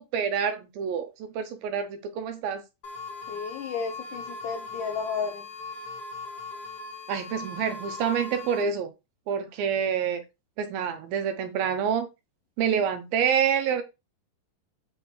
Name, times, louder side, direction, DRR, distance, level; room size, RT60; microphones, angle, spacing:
voice 1, 0.0-2.6 7.1-8.9 9.3-10.2 10.6-12.1 12.6-13.8, right 7 dB, 75° right, 2.4 m, -27 dB
sound 1, 2.8-8.6, left 3 dB, 35° left, 1.7 m, -39 dB
voice 2, 3.3-5.4, left 6 dB, 75° left, 2.0 m, -32 dB
8.2 x 5.7 x 3.2 m
omnidirectional pair, 4.7 m